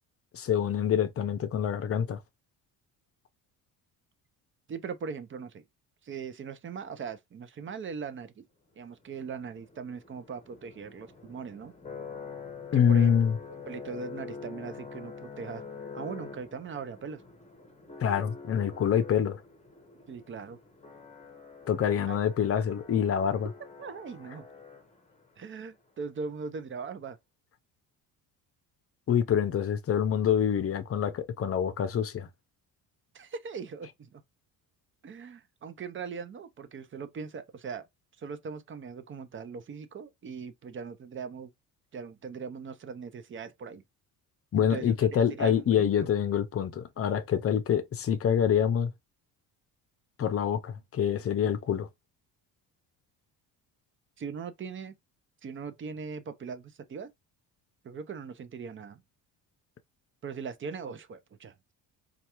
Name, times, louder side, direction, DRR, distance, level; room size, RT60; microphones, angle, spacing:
voice 1, 0.3-2.2 12.7-13.4 18.0-19.4 21.7-23.5 29.1-32.3 44.5-48.9 50.2-51.9, left 8 dB, 35° left, 0.6 m, -26 dB
voice 2, 4.7-5.6 6.0-8.4 8.8-11.7 12.7-13.2 13.7-15.6 15.9-17.2 20.1-20.6 22.1-22.2 23.8-24.5 25.4-27.2 33.1-34.2 35.0-37.8 38.2-41.5 41.9-43.8 44.6-46.1 54.2-55.0 55.4-57.1 57.8-59.0 60.2-61.7, right 5 dB, 30° right, 0.6 m, -40 dB
sound 1, 9.0-25.3, left 5 dB, 15° left, 1.0 m, -46 dB
4.4 x 2.4 x 2.9 m
cardioid pair, 120°, 38 cm